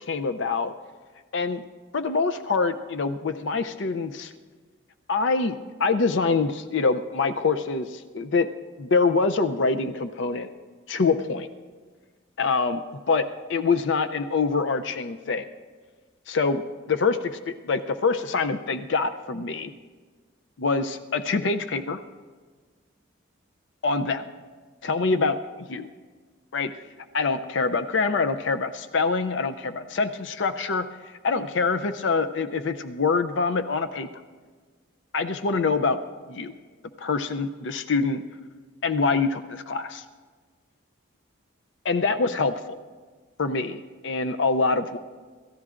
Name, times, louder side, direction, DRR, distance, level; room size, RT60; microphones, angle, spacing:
voice 1, 0.1-0.7 1.3-1.6 1.9-4.3 5.1-8.5 8.8-10.5 10.9-11.5 12.4-15.4 16.3-16.6 16.9-19.7 20.6-22.0 23.8-24.2 24.8-25.9 26.5-26.7 27.1-30.9 31.2-34.1 35.1-36.0 36.3-36.5 37.0-38.2 38.8-40.0 41.8-42.8 43.4-45.0, left 4 dB, 65° left, 9 dB, 0.5 m, -25 dB
27.5 x 14.5 x 2.5 m, 1.5 s
head